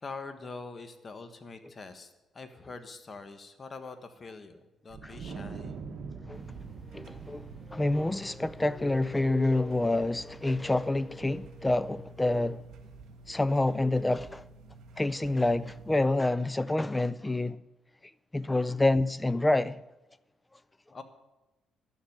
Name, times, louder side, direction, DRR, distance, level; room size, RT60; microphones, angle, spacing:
voice 1, 0.0-5.7 20.9-21.0, left 4 dB, 35° left, 1.5 m, -44 dB
Wind, 4.9-11.4, right 5 dB, 60° right, 1.3 m, -45 dB
sound 1, 6.3-16.1, right 3 dB, 75° right, 1.6 m, -51 dB
voice 2, 6.9-12.6 13.3-14.4 15.0-17.6 18.3-19.8, left 2 dB, 15° left, 0.5 m, -27 dB
12.0 x 7.2 x 9.4 m
cardioid pair, 90°, 0 cm